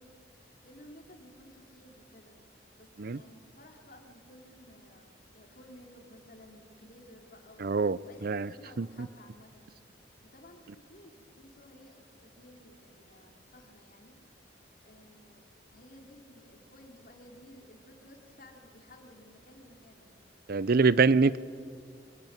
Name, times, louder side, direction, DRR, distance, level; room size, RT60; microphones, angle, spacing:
voice 1, 0.0-7.7 8.0-14.2 14.8-15.4 15.7-20.3, left 1 dB, 50° left, 2 dB, 3.9 m, -55 dB
voice 2, 7.6-8.5 8.8-9.1 20.5-21.4, right 4 dB, 55° right, 18 dB, 0.6 m, -25 dB
25.0 x 23.0 x 9.2 m, 2.1 s
head